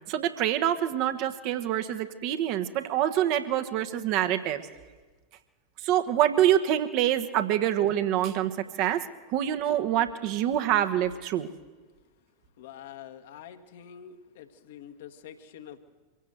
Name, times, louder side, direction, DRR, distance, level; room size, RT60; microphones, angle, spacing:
voice 1, 0.1-4.6 5.8-9.0 9.3-11.5, right 11 dB, 45° right, 8 dB, 1.4 m, -26 dB
voice 2, 12.6-15.8, left 9 dB, 55° left, 6 dB, 1.6 m, -46 dB
24.5 x 16.0 x 8.0 m, 1.3 s
figure-of-eight pair, 90°, 0 cm